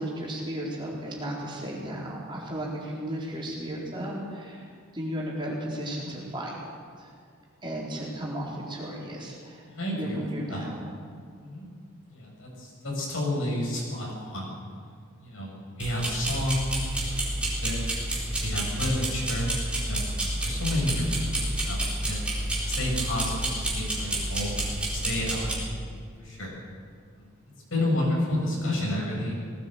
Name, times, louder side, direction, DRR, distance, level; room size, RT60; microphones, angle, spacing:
voice 1, 0.0-6.6 7.0-7.1 7.6-10.9, right 1 dB, 20° right, -4 dB, 4.2 m, -34 dB
voice 2, 9.6-10.7 11.4-11.7 12.1-14.5 15.2-17.8 18.4-22.3 22.6-25.9 26.2-26.6 27.2-27.3 27.7-29.3, left 1 dB, 65° left, -2 dB, 7.4 m, -31 dB
sound 1, 15.8-25.5, right 1 dB, 5° right, 4.2 m, -29 dB
19.5 x 16.5 x 8.1 m, 2.1 s
head